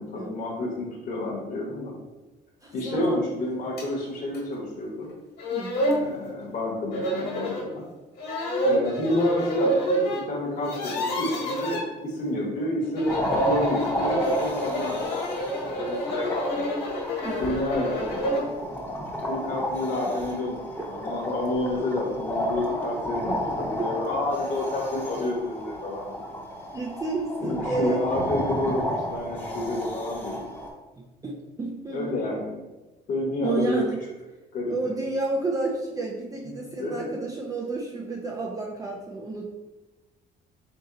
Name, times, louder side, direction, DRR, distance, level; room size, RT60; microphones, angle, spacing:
voice 1, 0.0-2.0 2.7-5.1 5.7-7.8 8.6-16.7 17.4-18.5 19.3-20.6 20.8-26.1 27.4-30.5 31.9-32.5 33.1-33.8 34.5-34.7 36.4-37.2, left 1 dB, 50° left, -3 dB, 1.1 m, -29 dB
voice 2, 2.6-3.2 5.5-5.8 15.9-16.0 17.2-17.5 23.8-23.9 26.7-28.0 31.2-32.2 33.4-34.0 34.7-39.5, right 3 dB, 20° right, -2 dB, 0.5 m, -31 dB
sound 1, 3.8-3.9 4.3-4.4 5.1-5.2 5.4-6.0 6.9-7.7 8.2-10.2 10.5-11.8 12.8-18.5, equal, 75° left, 1.5 m, -28 dB
sound 2, 13.1-30.7, equal, 10° left, 1.0 m, -32 dB
3.8 x 2.8 x 3.8 m, 1.1 s
cardioid pair, 110°, 17 cm